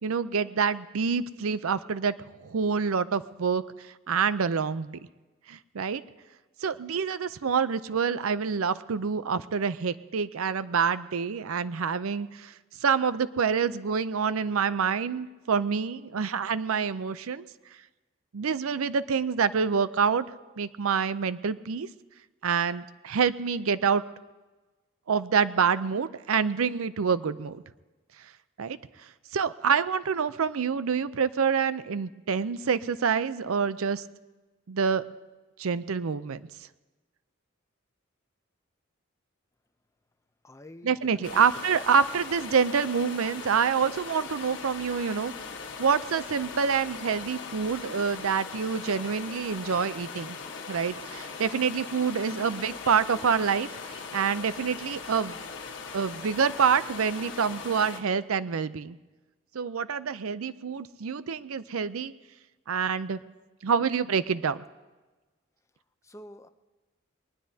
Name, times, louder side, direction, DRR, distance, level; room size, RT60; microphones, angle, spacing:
voice 1, 0.0-2.1 2.4-5.0 5.5-6.0 6.6-12.5 12.8-17.4 18.3-20.3 20.6-21.9 22.4-24.0 25.1-27.6 28.6-28.8 29.3-34.0 34.7-35.0 35.6-36.4 40.8-45.3 45.8-50.4 50.7-55.4 55.9-59.0 59.5-62.1 62.7-63.2 63.6-64.6, right 6 dB, 85° right, 15 dB, 0.5 m, -27 dB
voice 2, 40.4-41.4 66.0-66.5, left 1 dB, 15° left, 9 dB, 0.5 m, -47 dB
sound 1, 41.2-58.0, left 5 dB, 60° left, 1.4 m, -40 dB
21.5 x 19.5 x 2.8 m, 1.2 s
head